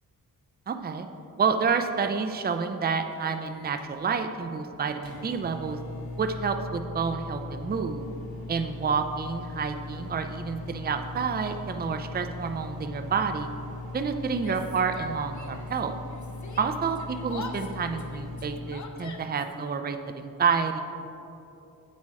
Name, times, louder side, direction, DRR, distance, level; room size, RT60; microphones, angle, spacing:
voice 1, 0.7-1.1 1.4-5.8 6.2-8.1 8.5-13.5 13.9-16.0 16.6-20.8, right 5 dB, 25° right, 7 dB, 0.5 m, -29 dB
Microwave oven, 3.5-18.6, left 2 dB, 80° left, 1.8 m, -39 dB
Yell, 14.3-15.8 16.1-19.5, left 4 dB, 55° left, 0.9 m, -42 dB
8.7 x 8.4 x 4.8 m, 2.8 s
wide cardioid pair, 95°, 36 cm